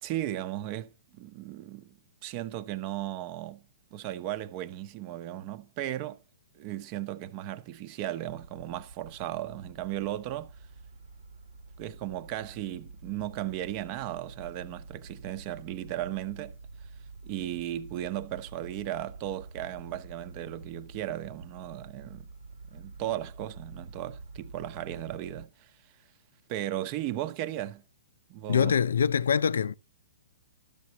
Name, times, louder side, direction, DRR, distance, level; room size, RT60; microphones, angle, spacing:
voice 1, 0.0-3.6 3.9-6.2 6.5-10.5 11.8-16.6 17.2-22.2 22.7-25.7 26.5-27.8 28.3-28.8, right 13 dB, 35° right, 0.8 m, -36 dB
sound 1, 8.3-25.5, right 3 dB, 80° right, 1.3 m, -48 dB
voice 2, 28.5-29.7, left 7 dB, 80° left, 0.6 m, -24 dB
12.5 x 6.7 x 3.0 m
hypercardioid pair, 145°, 0 cm